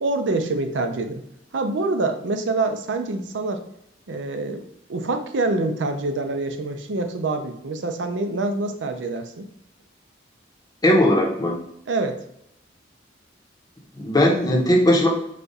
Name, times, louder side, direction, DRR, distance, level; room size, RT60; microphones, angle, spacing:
voice 1, 0.0-1.2 1.5-3.6 4.1-4.6 4.9-9.5 11.9-12.2, right 2 dB, 75° right, 6 dB, 0.5 m, -26 dB
voice 2, 10.8-11.6 13.9-15.1, left 1 dB, 20° left, 0 dB, 0.8 m, -18 dB
5.0 x 2.3 x 4.0 m, 0.75 s
head